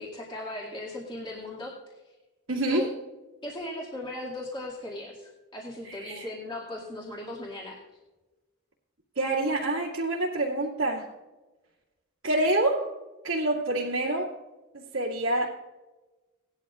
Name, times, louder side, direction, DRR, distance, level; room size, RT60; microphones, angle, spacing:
voice 1, 0.0-1.7 2.7-2.9 3.4-7.8, left 1 dB, 20° left, -4 dB, 2.2 m, -37 dB
voice 2, 2.5-2.9 5.8-6.3 9.2-11.1 12.2-12.9 13.2-14.3 14.7-15.5, right 2 dB, 75° right, -6 dB, 2.2 m, -27 dB
18.5 x 12.0 x 2.5 m, 1.1 s
head